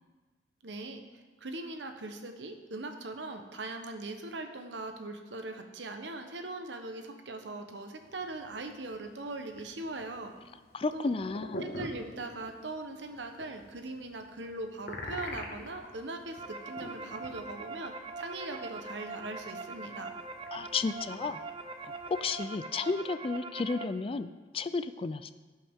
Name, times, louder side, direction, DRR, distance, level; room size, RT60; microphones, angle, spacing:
voice 1, 0.6-10.3 10.9-11.1 11.6-20.1, right 2 dB, 85° right, 6 dB, 1.0 m, -40 dB
sound 1, 8.0-22.3, left 1 dB, 55° left, 1.5 m, -47 dB
voice 2, 10.7-11.6 20.5-21.4 21.8-25.3, left 4 dB, 30° left, 12 dB, 0.3 m, -33 dB
sound 2, 16.0-23.8, right 3 dB, 30° right, 0.6 m, -42 dB
17.0 x 5.6 x 3.6 m, 1.3 s
head